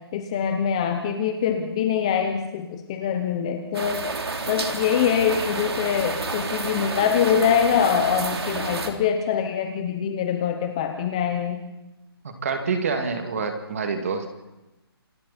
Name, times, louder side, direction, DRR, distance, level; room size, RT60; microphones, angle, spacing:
voice 1, 0.0-4.1 4.5-11.6, left 8 dB, 15° left, 5 dB, 0.8 m, -24 dB
sound 1, 3.7-8.9, right 3 dB, 80° right, 3.5 m, -30 dB
voice 2, 12.2-14.3, right 5 dB, 35° right, 5 dB, 2.5 m, -27 dB
27.5 x 27.0 x 4.3 m, 1.0 s
hypercardioid pair, 175°, 13 cm